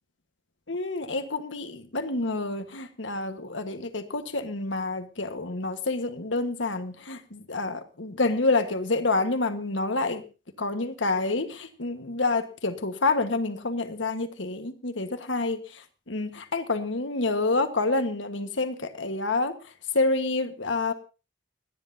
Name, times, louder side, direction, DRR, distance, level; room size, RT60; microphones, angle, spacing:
voice 1, 0.7-10.2 10.6-20.9, left 3 dB, 90° left, 8 dB, 1.5 m, -28 dB
29.5 x 10.0 x 2.8 m, 0.32 s
head